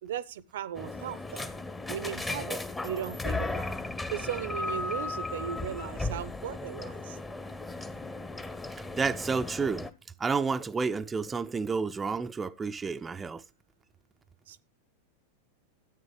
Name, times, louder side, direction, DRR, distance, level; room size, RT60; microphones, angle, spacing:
voice 1, 0.0-1.5 1.9-3.7 4.1-7.2 14.5-14.6, right 10 dB, 60° right, 0.6 m, -37 dB
sound 1, 0.8-9.9, left 2 dB, 10° left, 0.7 m, -36 dB
voice 2, 8.8-9.9 10.2-13.4, right 5 dB, 15° right, 0.4 m, -30 dB
13.0 x 8.9 x 3.2 m
figure-of-eight pair, 90°, 0 cm